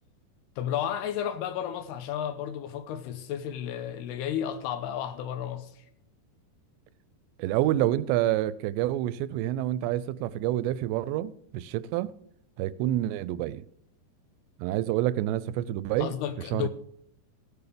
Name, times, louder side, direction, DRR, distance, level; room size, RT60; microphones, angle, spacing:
voice 1, 0.6-5.8 16.0-16.7, left 9 dB, 80° left, 2.6 m, -32 dB
voice 2, 7.4-12.1 12.6-13.6 14.6-16.1 16.5-16.7, right 13 dB, 85° right, 2.7 m, -28 dB
16.5 x 7.0 x 5.1 m
omnidirectional pair, 5.1 m